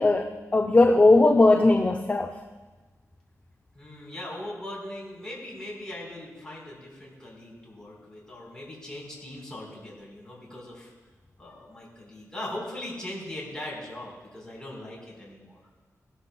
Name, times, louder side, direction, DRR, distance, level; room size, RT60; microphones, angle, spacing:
voice 1, 0.0-2.3, left 2 dB, 25° left, 3 dB, 0.6 m, -19 dB
voice 2, 3.7-10.9 11.4-15.6, left 1 dB, 10° left, -4 dB, 4.3 m, -40 dB
17.5 x 11.5 x 2.3 m, 1.3 s
wide cardioid pair, 95°, 6 cm